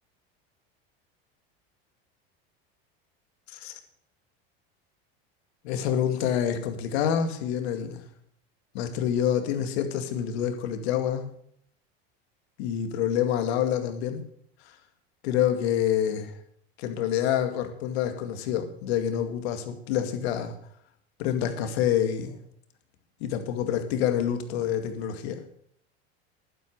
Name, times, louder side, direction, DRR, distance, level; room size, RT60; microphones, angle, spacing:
voice 1, 5.6-8.0 8.7-11.3 12.6-14.2 15.2-16.3 16.8-20.6 21.2-22.4 23.2-25.4, left 9 dB, 75° left, 7 dB, 2.1 m, -27 dB
11.5 x 10.5 x 6.5 m, 0.66 s
supercardioid pair, 100°, 32 cm